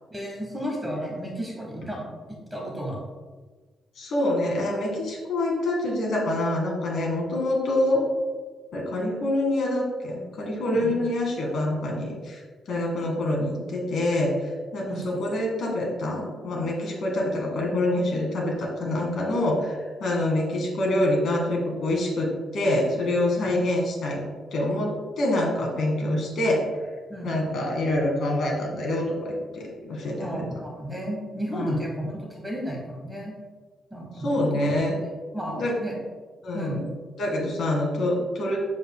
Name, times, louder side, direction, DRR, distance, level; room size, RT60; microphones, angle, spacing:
voice 1, 0.1-3.1 10.7-10.9 14.9-15.1 23.4-23.5 27.1-27.3 30.2-33.3 33.9-34.8 35.3-36.0 36.5-36.9, equal, 5° right, -1 dB, 1.1 m, -33 dB
voice 2, 4.0-8.1 8.7-12.4 12.7-24.2 24.5-26.7 27.2-30.4 31.5-31.8 34.2-35.0 35.5-35.8 36.4-36.8 37.2-38.6, left 1 dB, 55° left, -1 dB, 1.8 m, -26 dB
7.4 x 7.1 x 2.2 m, 1.4 s
cardioid pair, 175°, 0 cm